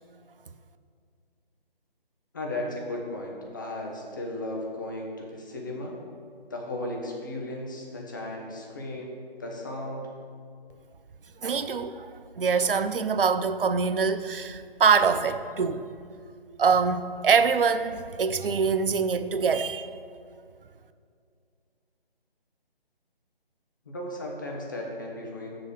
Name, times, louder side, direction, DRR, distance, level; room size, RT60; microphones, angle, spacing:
voice 1, 2.3-5.9 6.5-10.1 23.9-25.5, left 1 dB, 20° left, 0.7 m, -35 dB
voice 2, 11.4-15.8 16.6-19.9, right 5 dB, 65° right, 0.5 m, -24 dB
7.1 x 3.8 x 6.5 m
figure-of-eight pair, 150°, 30 cm